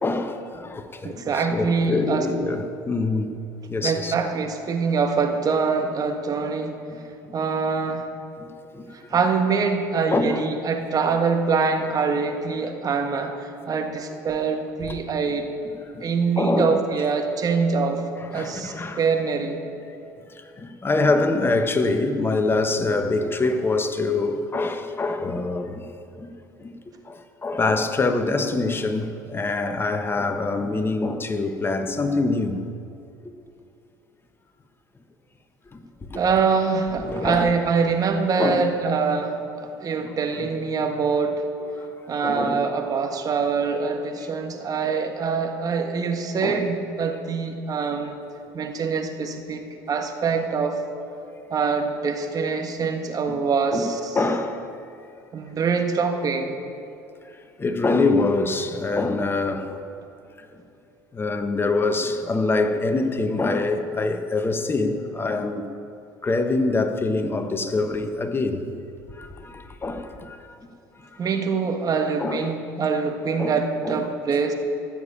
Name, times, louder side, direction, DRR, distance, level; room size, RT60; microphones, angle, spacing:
voice 1, 0.0-3.3 3.7-4.1 6.9-7.0 7.3-7.4 8.4-8.5 8.7-8.9 10.1-10.5 14.8-15.0 15.9-16.1 16.4-16.8 18.3-19.0 20.3-25.8 26.2-26.3 26.6-26.7 27.0-32.7 35.7-36.2 37.0-37.5 38.4-38.7 40.3-40.5 41.8-42.6 46.4-46.6 51.2-51.3 53.3-53.4 53.7-53.9 54.1-54.7 57.6-60.0 60.4-60.6 61.1-65.7 66.2-68.8 69.1-70.7 71.0-71.1 72.2-72.5 73.4-73.5 73.8-74.0, left 3 dB, 25° left, 1.2 m, -25 dB
voice 2, 1.0-2.2 3.8-6.7 7.3-8.0 8.9-15.5 16.0-18.0 18.3-19.6 36.1-39.4 39.8-41.4 42.1-48.2 48.5-49.6 49.9-50.8 51.5-54.2 55.3-56.6 71.2-74.5, right 5 dB, 40° right, 1.6 m, -24 dB
14.5 x 7.1 x 8.7 m
hypercardioid pair, 70°, 10 cm